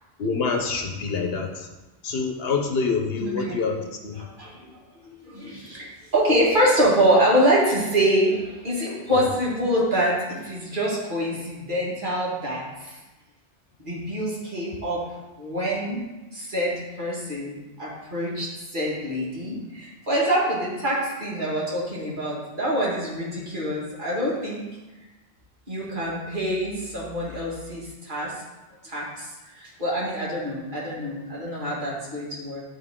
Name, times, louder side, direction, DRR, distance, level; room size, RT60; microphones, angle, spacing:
voice 1, 0.2-1.7 2.0-3.8 4.0-4.1 9.1-9.3, left 5 dB, 70° left, 4 dB, 1.0 m, -26 dB
voice 2, 3.2-3.6 4.1-13.0 13.8-15.0 15.4-16.0 16.3-24.6 25.7-28.3 28.8-32.6, equal, 50° right, -6 dB, 2.2 m, -25 dB
11.0 x 3.7 x 3.6 m, 1.1 s
omnidirectional pair, 1.1 m